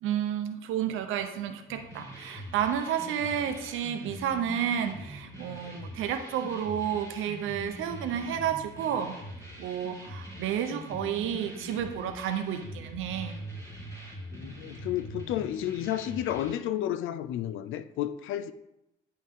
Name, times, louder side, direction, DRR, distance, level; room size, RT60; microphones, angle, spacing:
voice 1, 0.0-9.2 9.6-13.4, right 9 dB, 90° right, 0.9 m, -31 dB
sound 1, 1.7-16.5, equal, 15° left, 2.5 m, -43 dB
voice 2, 14.3-18.5, left 11 dB, 85° left, 0.5 m, -31 dB
9.9 x 5.6 x 3.7 m
cardioid pair, 90°, 20 cm